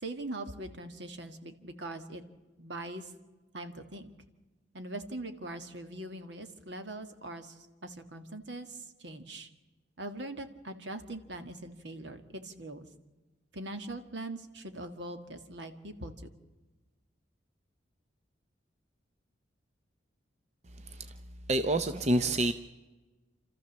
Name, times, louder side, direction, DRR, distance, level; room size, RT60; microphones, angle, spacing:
voice 1, 0.0-2.2 2.6-3.1 3.5-4.1 4.7-9.5 10.0-12.9 13.5-16.1, right 2 dB, 70° right, 7 dB, 1.8 m, -42 dB
voice 2, 21.5-22.5, right 1 dB, 35° right, 9 dB, 0.7 m, -27 dB
29.5 x 13.5 x 7.3 m, 1.2 s
head